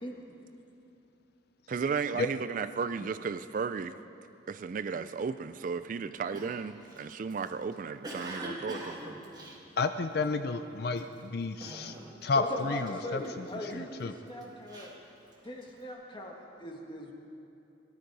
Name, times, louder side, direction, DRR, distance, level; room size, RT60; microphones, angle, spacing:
voice 1, 1.7-4.0 4.5-9.0, right 5 dB, 45° right, 12 dB, 0.3 m, -34 dB
Cough, 6.3-10.4 10.9-11.2 11.6-12.3 12.6-13.7 14.3-15.8, right 1 dB, 20° right, 1.5 m, -43 dB
voice 2, 9.8-11.9 12.2-14.1, left 3 dB, 60° left, 8 dB, 0.5 m, -31 dB
voice 3, 12.3-14.9 15.4-17.1, left 1 dB, 25° left, 1 dB, 1.5 m, -40 dB
18.0 x 12.0 x 4.8 m, 2.8 s
head